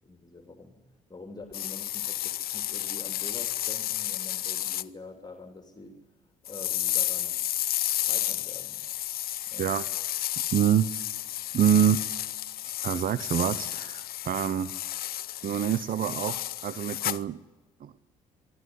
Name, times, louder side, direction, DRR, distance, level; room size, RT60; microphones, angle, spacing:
voice 1, 0.0-0.8 1.1-6.0 6.5-7.4 8.0-8.9 9.5-9.7, left 3 dB, 20° left, 4 dB, 3.2 m, -46 dB
sound 1, 1.5-4.8 6.4-17.2, left 13 dB, 60° left, 0.6 m, -32 dB
voice 2, 10.5-12.0 12.8-14.7 15.4-17.4 17.8-17.9, right 9 dB, 50° right, 15 dB, 0.9 m, -26 dB
23.0 x 12.5 x 9.5 m, 1.2 s
hypercardioid pair, 55°, 18 cm